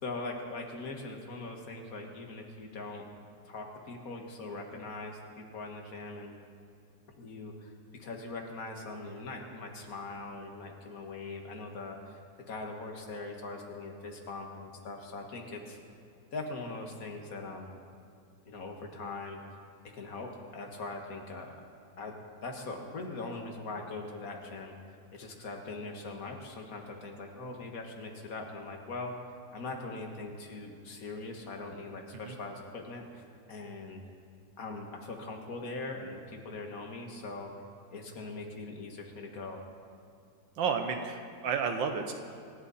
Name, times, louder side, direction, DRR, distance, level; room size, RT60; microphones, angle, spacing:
voice 1, 0.0-3.0 3.5-6.4 7.2-12.2 12.5-15.8 16.3-17.7 18.5-19.4 19.9-21.5 22.0-24.8 25.1-29.1 29.5-33.2 33.5-34.0 34.6-37.5 37.9-39.6, left 3 dB, 50° left, 2 dB, 2.0 m, -41 dB
voice 2, 40.6-42.1, right 6 dB, 75° right, 6 dB, 1.6 m, -31 dB
26.0 x 11.5 x 4.2 m, 2.4 s
omnidirectional pair, 2.1 m